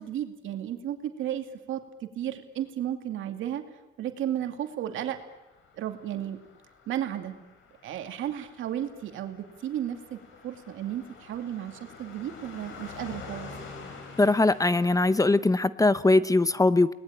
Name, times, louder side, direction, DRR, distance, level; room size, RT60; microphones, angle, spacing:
voice 1, 0.0-3.6 4.0-5.2 5.8-6.4 6.9-7.3 7.8-10.2 10.4-13.5, right 11 dB, 80° right, 6 dB, 2.5 m, -33 dB
Car passing by, 5.4-15.4, left 4 dB, 80° left, 5.4 m, -47 dB
voice 2, 14.2-16.9, left 2 dB, 15° left, 15 dB, 0.8 m, -21 dB
29.5 x 20.0 x 8.8 m, 1.0 s
cardioid pair, 90°, 20 cm